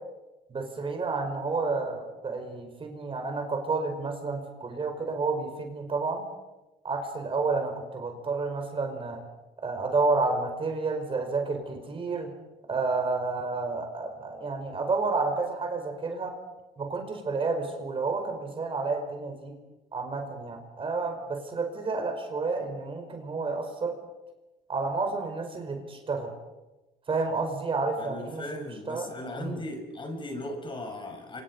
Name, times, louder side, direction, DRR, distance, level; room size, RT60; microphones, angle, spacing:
voice 1, 0.5-6.3 6.8-9.2 9.6-12.3 12.7-16.4 16.8-19.5 19.9-24.0 24.7-26.3 27.1-29.1 29.4-29.6, right 3 dB, 30° right, 4 dB, 5.2 m, -30 dB
voice 2, 28.0-31.4, left 1 dB, 30° left, 4 dB, 6.4 m, -37 dB
29.0 x 26.5 x 5.6 m, 1.1 s
cardioid pair, 110°, 17 cm